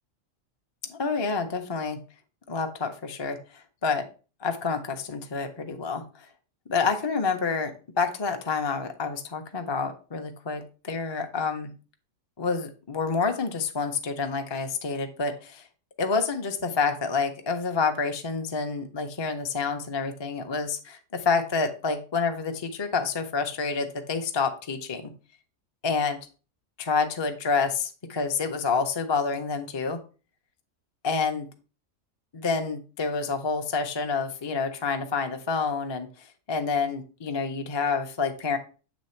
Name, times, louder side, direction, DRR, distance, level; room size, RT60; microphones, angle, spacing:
voice 1, 0.9-2.0 2.5-4.0 4.4-6.3 6.7-11.7 12.4-15.6 16.0-25.0 25.8-26.2 26.8-30.0 31.0-31.5 32.3-38.6, left 5 dB, 30° left, 5 dB, 0.5 m, -28 dB
7.3 x 3.4 x 4.3 m, 0.35 s
omnidirectional pair, 1.4 m